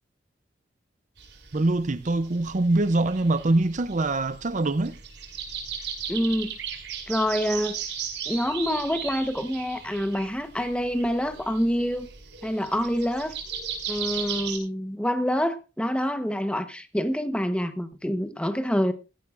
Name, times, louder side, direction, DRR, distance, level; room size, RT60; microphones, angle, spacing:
sound 1, 1.2-14.6, right 7 dB, 75° right, 4.9 m, -36 dB
voice 1, 1.5-5.0, right 2 dB, 45° right, 0.6 m, -24 dB
voice 2, 6.1-6.5 7.1-7.8 8.3-12.1 12.4-13.3 13.9-18.9, equal, 5° left, 1.0 m, -26 dB
17.0 x 14.0 x 2.5 m
head